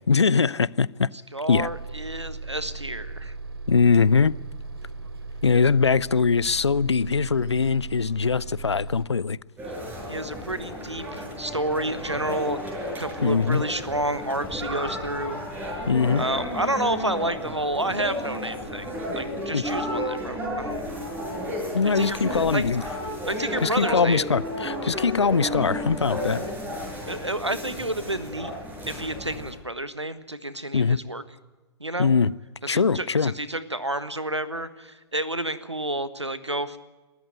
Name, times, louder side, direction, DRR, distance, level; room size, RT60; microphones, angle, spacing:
voice 1, 0.1-1.1 1.5-1.7 3.7-4.4 5.4-9.4 13.2-13.6 15.9-16.3 19.5-19.6 21.7-22.8 23.6-26.5 30.7-31.0 32.0-32.3 32.7-33.3, left 5 dB, 75° left, 0.6 m, -22 dB
voice 2, 1.3-3.3 10.1-12.6 13.0-15.4 15.8-15.9 16.2-18.9 19.1-20.8 21.8-22.6 23.2-24.2 27.1-28.5 28.9-31.2 31.8-32.1 32.7-36.8, right 1 dB, 90° right, 1.4 m, -30 dB
Bus, 1.5-9.1, right 3 dB, 60° right, 3.1 m, -37 dB
sound 1, 9.6-29.5, left 1 dB, 15° right, 6.4 m, -33 dB
22.5 x 14.0 x 9.4 m
figure-of-eight pair, 120°, 14 cm